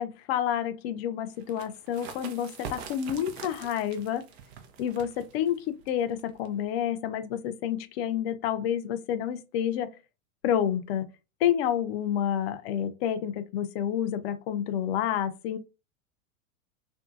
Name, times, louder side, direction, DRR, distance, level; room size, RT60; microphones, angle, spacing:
voice 1, 0.0-4.2 4.8-9.9 10.4-11.1 11.4-15.6, left 10 dB, 50° left, 0.5 m, -29 dB
sound 1, 1.4-6.7, right 6 dB, 50° right, 0.6 m, -45 dB
2.5 x 2.2 x 2.5 m
hypercardioid pair, 95°, 41 cm